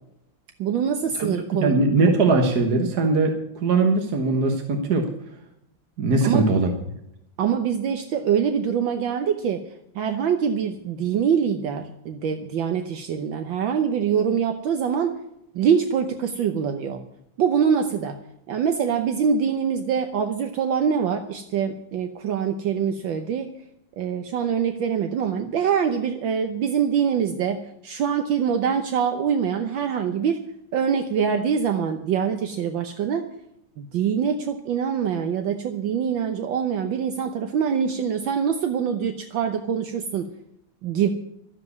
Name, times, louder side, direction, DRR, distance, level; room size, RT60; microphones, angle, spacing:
voice 1, 0.6-1.8 6.2-6.5 7.4-15.2 15.5-17.0 17.4-18.2 18.5-23.5 24.0-30.5 30.7-33.2 33.8-40.3 40.8-41.1, right 7 dB, 75° right, 6 dB, 1.6 m, -24 dB
voice 2, 1.2-5.1 6.0-6.7, right 3 dB, 55° right, 4 dB, 1.8 m, -21 dB
13.0 x 7.6 x 9.4 m, 0.80 s
omnidirectional pair, 2.2 m